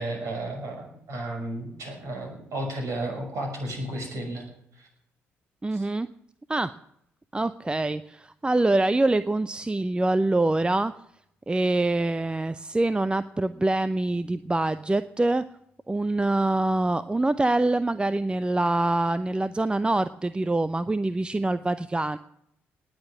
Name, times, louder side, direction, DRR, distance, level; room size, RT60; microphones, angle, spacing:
voice 1, 0.0-4.5 4.7-4.9 5.7-5.9, right 1 dB, 50° right, 2 dB, 6.3 m, -33 dB
voice 2, 5.6-6.1 6.5-6.7 7.3-10.9 11.5-15.4 15.9-22.2, right 2 dB, 15° right, 15 dB, 0.6 m, -25 dB
19.0 x 6.7 x 9.7 m, 0.74 s
figure-of-eight pair, 45°, 7 cm